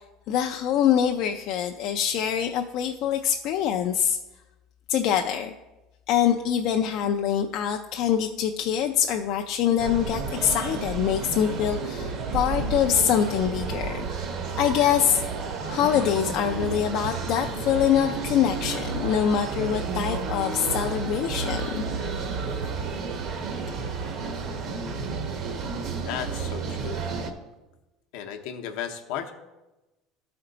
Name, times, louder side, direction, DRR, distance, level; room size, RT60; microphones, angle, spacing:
voice 1, 0.3-4.2 4.9-5.5 6.1-14.1 14.6-15.2 15.7-21.8, left 9 dB, 55° left, 4 dB, 0.4 m, -24 dB
sound 1, 9.8-27.3, right 4 dB, 45° right, 0.8 m, -31 dB
voice 2, 25.9-27.0 28.1-29.3, left 9 dB, 75° left, 4 dB, 0.7 m, -34 dB
12.0 x 4.3 x 3.9 m, 1.1 s
cardioid pair, 150°, 0 cm